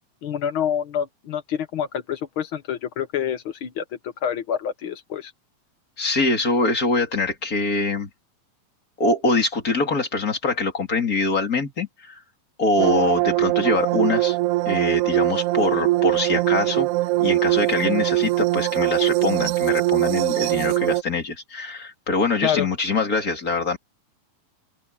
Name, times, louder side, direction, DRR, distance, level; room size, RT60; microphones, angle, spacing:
voice 1, 0.2-3.8 4.2-5.3 22.4-22.7, left 9 dB, 65° left, 1.2 m, -27 dB
voice 2, 6.0-8.1 9.0-12.2 12.6-14.4 14.6-16.9 17.2-23.8, left 3 dB, 25° left, 3.3 m, -24 dB
sound 1, 12.8-21.0, right 18 dB, 85° right, 1.7 m, -21 dB
open air
omnidirectional pair, 3.9 m